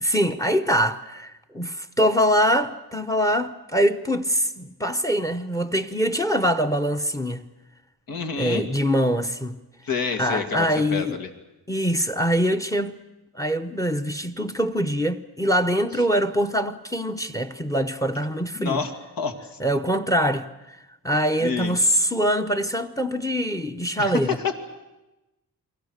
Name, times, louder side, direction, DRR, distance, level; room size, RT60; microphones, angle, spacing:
voice 1, 0.0-7.5 8.4-9.6 10.2-11.2 11.7-13.0 13.3-18.8 19.6-20.8 21.0-24.4, equal, 10° left, 0.9 m, -23 dB
voice 2, 8.1-8.7 9.8-11.3 18.5-18.9 19.2-19.3 21.4-21.8 24.0-24.6, left 5 dB, 75° left, 2.7 m, -27 dB
30.0 x 23.0 x 6.6 m
wide cardioid pair, 170°, 35 cm